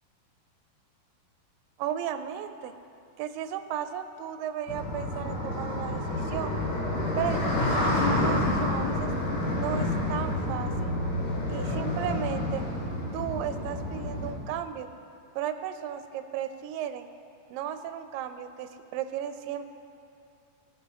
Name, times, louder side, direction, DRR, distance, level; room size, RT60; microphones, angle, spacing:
voice 1, 1.8-2.7 3.2-6.5 7.2-9.1 9.5-11.0 11.5-12.6 13.1-14.9 15.4-17.1 17.5-19.7, right 10 dB, 90° right, 9 dB, 2.3 m, -35 dB
sound 1, 4.7-14.3, left 1 dB, 60° left, 2.8 m, -29 dB
18.5 x 6.3 x 3.7 m, 2.7 s
omnidirectional pair, 3.9 m